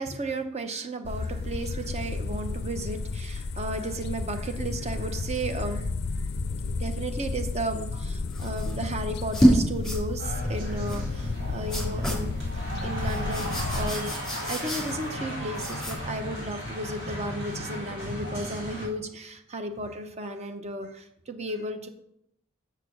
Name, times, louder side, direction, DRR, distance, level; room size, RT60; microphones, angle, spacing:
voice 1, 0.0-5.9 6.2-6.3 6.8-12.5 12.8-14.2 14.5-21.9, right 2 dB, 35° right, 7 dB, 0.9 m, -34 dB
sound 1, 1.0-14.0, left 3 dB, 55° left, 0.4 m, -32 dB
sound 2, 8.3-8.7 9.2-9.6 9.8-10.0 10.9-11.0 11.7-12.3 13.0-15.2 15.5-16.1, equal, ahead, 3.4 m, -27 dB
sound 3, 10.2-18.9, equal, 65° right, 3.7 m, -35 dB
6.8 x 6.7 x 6.2 m, 0.76 s
head